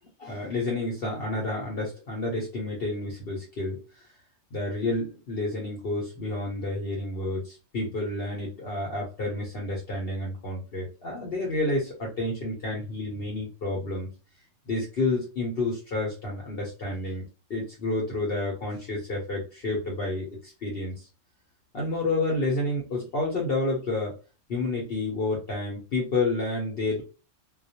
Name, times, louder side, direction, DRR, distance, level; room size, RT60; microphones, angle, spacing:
voice 1, 0.2-3.8 4.5-14.1 14.7-17.2 17.5-21.1 21.7-24.1 24.5-27.0, left 2 dB, 55° left, -2 dB, 0.8 m, -30 dB
2.3 x 2.0 x 2.7 m, 0.33 s
omnidirectional pair, 1.4 m